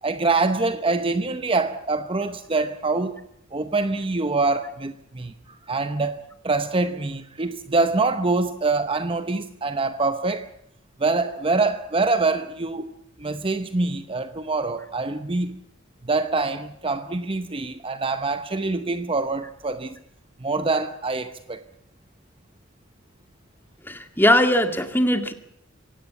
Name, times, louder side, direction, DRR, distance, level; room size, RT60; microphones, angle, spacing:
voice 1, 0.0-3.2 3.5-10.5 11.0-12.9 13.2-15.6 16.0-20.0 20.4-21.6, right 3 dB, 25° right, 0.8 m, -25 dB
voice 2, 23.9-25.3, left 1 dB, 10° left, 2.2 m, -20 dB
25.5 x 17.5 x 8.5 m
head